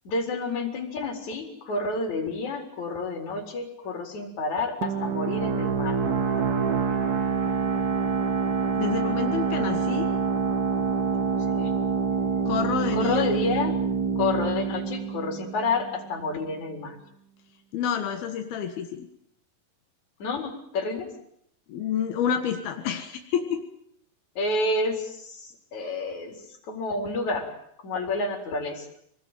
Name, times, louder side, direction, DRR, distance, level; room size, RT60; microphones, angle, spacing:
voice 1, 0.1-6.0 11.5-11.7 12.9-13.7 14.2-17.0 20.2-21.1 24.4-26.4 26.6-27.6 27.8-28.9, left 3 dB, 50° left, 4 dB, 5.6 m, -29 dB
sound 1, 4.8-16.2, right 5 dB, 55° right, 1.0 m, -26 dB
voice 2, 8.8-10.1 12.5-13.2 17.7-19.1 21.7-23.6, left 8 dB, 85° left, 6 dB, 3.6 m, -28 dB
25.5 x 20.5 x 9.3 m, 0.71 s
omnidirectional pair, 4.2 m